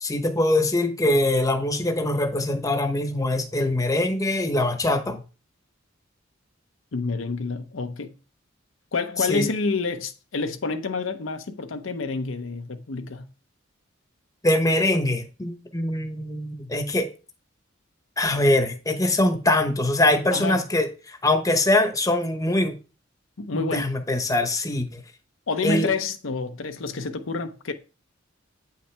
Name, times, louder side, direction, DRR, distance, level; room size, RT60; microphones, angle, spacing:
voice 1, 0.0-5.2 9.2-9.5 14.4-17.1 18.2-22.8 23.5-25.0 25.6-25.9, left 1 dB, 15° left, 0.9 m, -23 dB
voice 2, 6.9-8.1 8.9-13.3 20.3-20.6 23.4-24.0 25.5-27.7, left 4 dB, 75° left, 0.7 m, -28 dB
8.5 x 5.8 x 3.3 m
head